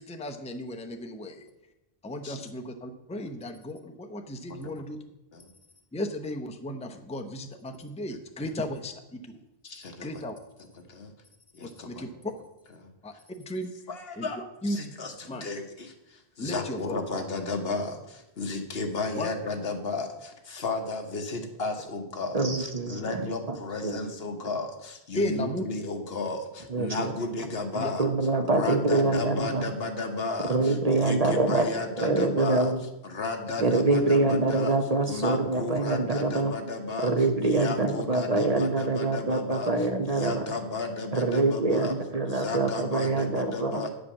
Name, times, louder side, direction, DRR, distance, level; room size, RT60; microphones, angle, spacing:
voice 1, 0.0-1.5 2.0-5.0 5.9-9.4 10.0-10.4 11.6-12.3 13.0-13.7 14.2-14.3 14.6-14.8 15.3-15.5 16.4-17.0 19.2-19.3 25.1-25.6 27.8-27.9, left 1 dB, 5° left, 4 dB, 0.6 m, -35 dB
voice 2, 9.6-10.1 10.8-11.1 11.5-12.1 12.8-12.9 13.9-28.1 28.5-32.7 33.0-34.7 35.0-37.1 37.4-41.9 42.3-43.9, left 3 dB, 65° left, 5 dB, 1.4 m, -34 dB
voice 3, 22.3-23.2 23.5-23.6 23.8-24.0 26.7-27.1 28.0-29.6 30.5-32.8 33.6-36.5 37.0-40.4 41.1-43.8, right 2 dB, 40° right, 6 dB, 0.8 m, -25 dB
9.6 x 5.1 x 7.3 m, 0.92 s
omnidirectional pair, 1.1 m